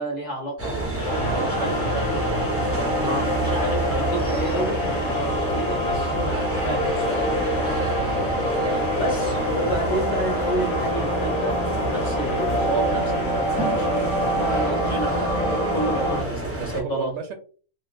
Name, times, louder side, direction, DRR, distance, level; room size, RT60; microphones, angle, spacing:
voice 1, 0.0-1.0 1.3-1.9 3.0-7.3 9.0-11.6 11.9-15.3 15.7-17.1, right 2 dB, 35° left, -4 dB, 1.2 m, -31 dB
sound 1, 0.6-16.8, right 2 dB, 20° right, 0.4 m, -29 dB
sound 2, 1.0-16.2, equal, 80° left, 1.3 m, -26 dB
sound 3, 1.0-14.7, left 5 dB, 60° left, 0.9 m, -36 dB
voice 2, 1.1-2.3 8.0-8.3 16.6-17.3, right 5 dB, 70° right, 5 dB, 0.8 m, -32 dB
3.0 x 2.5 x 2.5 m, 0.40 s
omnidirectional pair, 1.3 m